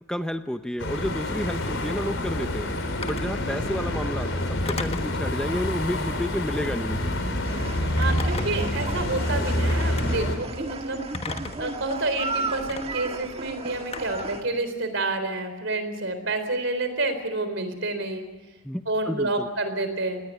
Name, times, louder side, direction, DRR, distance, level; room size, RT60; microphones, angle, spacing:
voice 1, 0.1-2.7 3.0-4.4 4.7-7.2 18.6-19.5, equal, 5° left, 8 dB, 0.7 m, -31 dB
sound 1, 0.8-10.4, left 1 dB, 70° left, 4.1 m, -27 dB
Telephone, 3.0-3.3 4.6-5.2 6.4-6.8 8.0-8.7 9.7-10.1 11.1-11.7 12.7-12.8 13.9-14.3, left 3 dB, 30° left, 1.2 m, -34 dB
sound 2, 7.4-14.4, right 3 dB, 30° right, 1.6 m, -35 dB
voice 2, 8.0-18.2 18.9-20.2, right 2 dB, 65° right, 9 dB, 4.1 m, -29 dB
19.5 x 19.0 x 9.3 m, 1.2 s
head